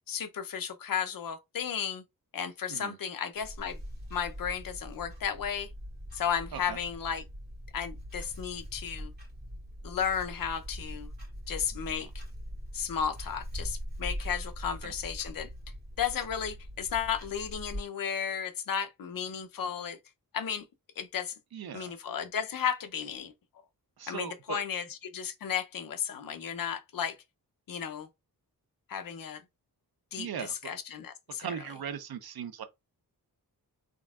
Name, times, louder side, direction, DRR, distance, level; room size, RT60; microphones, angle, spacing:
voice 1, 0.1-2.0 2.3-3.8 4.1-5.7 6.1-7.2 7.7-9.1 9.8-11.1 11.5-12.1 12.7-15.5 16.0-20.0 20.3-20.6 21.0-21.3 21.7-23.3 24.1-24.8 25.1-27.2 27.7-28.1 28.9-29.4 30.1-31.5, left 8 dB, 60° left, 0.7 m, -34 dB
Clock, 3.4-17.8, equal, 25° right, 2.4 m, -42 dB
voice 2, 21.5-21.9 24.0-24.6 30.2-30.7 31.4-32.6, right 8 dB, 75° right, 0.7 m, -39 dB
3.8 x 3.5 x 2.3 m
wide cardioid pair, 140°, 37 cm